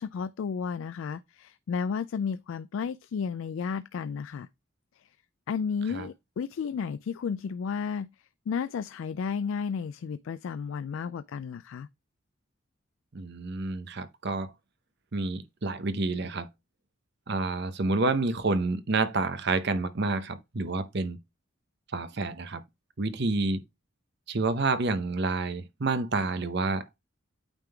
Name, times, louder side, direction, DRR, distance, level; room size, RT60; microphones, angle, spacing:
voice 1, 0.0-4.5 5.0-5.1 5.5-8.1 8.5-11.9, left 6 dB, 70° left, 0.3 m, -33 dB
voice 2, 13.1-14.5 15.1-16.5 17.3-21.2 21.9-22.6 23.0-23.6 24.3-27.0, right 3 dB, 55° right, 0.8 m, -29 dB
9.0 x 3.7 x 3.4 m
head